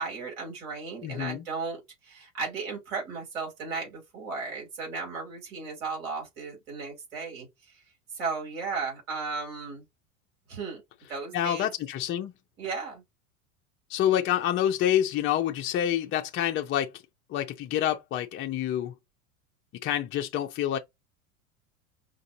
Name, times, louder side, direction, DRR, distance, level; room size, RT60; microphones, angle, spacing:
voice 1, 0.0-7.5 8.1-9.8 10.5-10.8 11.1-11.7 12.6-13.0, right 4 dB, 75° right, 3.1 m, -35 dB
voice 2, 1.0-1.4 11.3-12.3 13.9-16.9 17.3-18.9 19.8-20.8, left 11 dB, 30° left, 0.5 m, -27 dB
5.1 x 2.6 x 2.7 m
hypercardioid pair, 85°, 41 cm